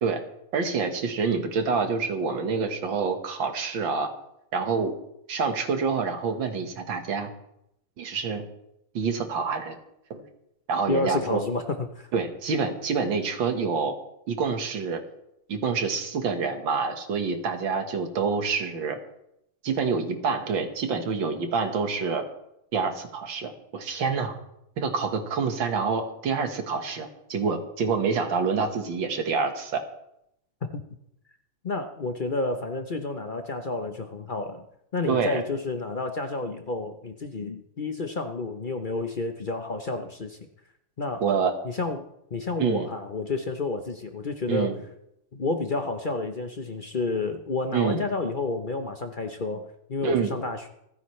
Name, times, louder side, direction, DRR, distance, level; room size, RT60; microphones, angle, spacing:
voice 1, 0.5-4.1 4.5-4.9 5.3-7.3 8.0-8.4 8.9-9.8 10.1-10.2 10.7-11.4 12.1-13.9 14.3-15.0 15.5-19.0 19.6-22.2 22.7-24.3 24.8-29.8 35.1-35.4 41.2-41.6 42.6-42.9 44.5-44.8 47.7-48.0 50.0-50.4, right 5 dB, 85° right, 6 dB, 2.2 m, -27 dB
voice 2, 10.9-12.1 30.6-30.8 31.6-34.6 34.9-40.4 41.0-41.2 41.6-44.8 45.3-50.7, left 3 dB, 45° left, 6 dB, 0.6 m, -30 dB
27.5 x 10.0 x 3.2 m, 0.79 s
omnidirectional pair, 2.0 m